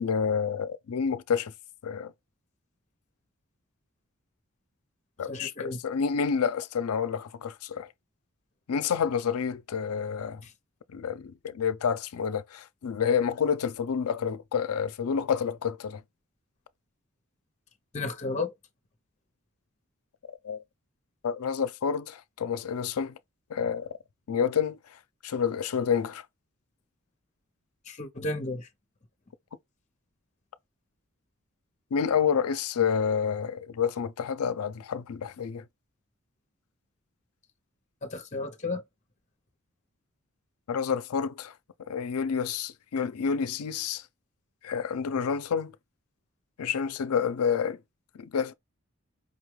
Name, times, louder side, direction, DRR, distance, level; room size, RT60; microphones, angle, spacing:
voice 1, 0.0-1.5 1.8-2.1 5.2-7.9 8.7-10.4 10.9-16.0 20.3-20.6 21.2-23.1 23.5-24.0 24.3-24.8 25.2-26.2 31.9-35.6 40.7-41.5 41.9-44.0 44.6-45.7 46.6-47.8 48.1-48.5, left 7 dB, 90° left, 0.4 m, -29 dB
voice 2, 5.3-5.8 10.4-10.5 17.9-18.5 27.9-28.7 38.0-38.8, left 2 dB, 35° left, 0.7 m, -33 dB
5.2 x 2.3 x 3.1 m
head